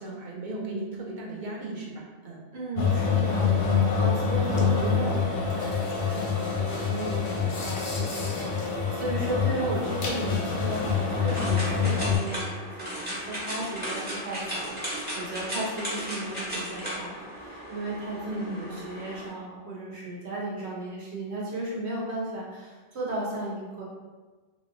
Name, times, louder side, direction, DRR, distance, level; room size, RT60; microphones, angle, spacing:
voice 1, 0.0-2.4 9.6-10.0 10.2-10.5 18.0-18.8, right 2 dB, 55° right, -2 dB, 0.6 m, -36 dB
voice 2, 2.5-5.8 6.0-23.8, right 2 dB, 70° right, -4 dB, 1.1 m, -35 dB
sound 1, 2.8-12.2, left 6 dB, 55° left, 0.7 m, -26 dB
sound 2, 10.6-19.3, equal, 10° right, 1.0 m, -36 dB
3.0 x 2.9 x 2.6 m, 1.3 s
omnidirectional pair, 1.2 m